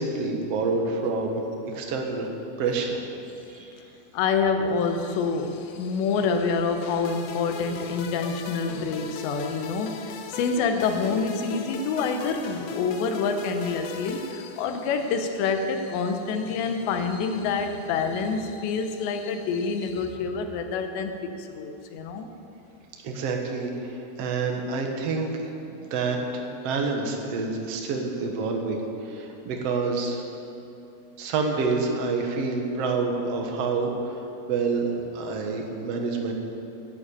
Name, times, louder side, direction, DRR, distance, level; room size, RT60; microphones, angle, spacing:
voice 1, 0.0-1.4 1.7-2.3 2.6-3.1 3.5-3.7 23.0-30.2 31.2-34.2 34.5-36.3, right 4 dB, 65° right, 2 dB, 1.5 m, -28 dB
voice 2, 4.1-22.3, left 5 dB, 90° left, 6 dB, 3.2 m, -27 dB
sound 1, 6.8-15.1, left 6 dB, 70° left, 2.5 m, -38 dB
11.0 x 10.0 x 8.8 m, 2.8 s
omnidirectional pair, 4.9 m